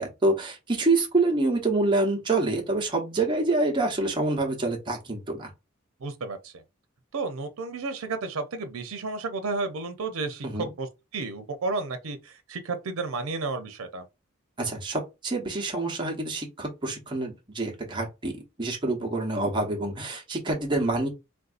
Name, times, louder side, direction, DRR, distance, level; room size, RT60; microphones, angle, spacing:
voice 1, 0.0-5.5 10.4-10.7 14.6-18.3 18.6-21.1, right 2 dB, 20° right, 0.8 m, -26 dB
voice 2, 6.0-6.6 7.1-10.9 11.1-14.0, right 3 dB, 85° right, 0.6 m, -32 dB
3.5 x 2.6 x 2.4 m
head